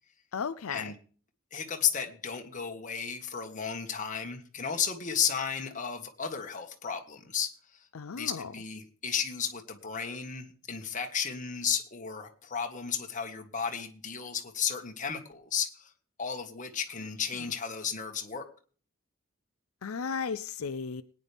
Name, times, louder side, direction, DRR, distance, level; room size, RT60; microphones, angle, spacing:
voice 1, 0.3-0.9 7.9-8.5 19.8-21.0, left 5 dB, 85° left, 11 dB, 0.6 m, -35 dB
voice 2, 1.5-7.5 8.2-15.9 16.2-18.4, left 7 dB, 35° left, 4 dB, 1.7 m, -33 dB
20.0 x 9.7 x 3.5 m, 0.42 s
head